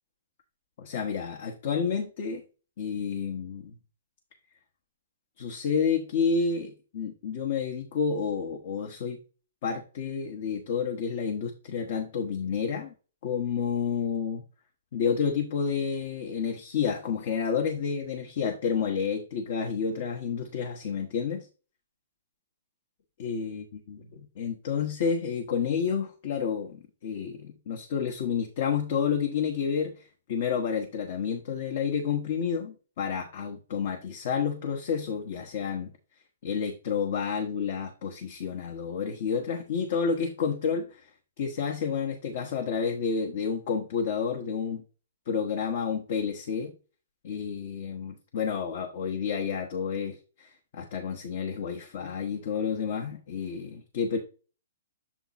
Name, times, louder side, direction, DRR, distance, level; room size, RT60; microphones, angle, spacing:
voice 1, 0.8-2.4 2.8-3.8 5.4-9.2 9.6-12.9 13.2-14.4 14.9-21.5 23.2-24.0 24.4-35.9 36.4-41.1 41.4-44.8 45.3-46.7 47.2-54.2, left 6 dB, 50° left, 3 dB, 1.1 m, -30 dB
7.3 x 3.7 x 4.1 m, 0.35 s
hypercardioid pair, 155°, 0 cm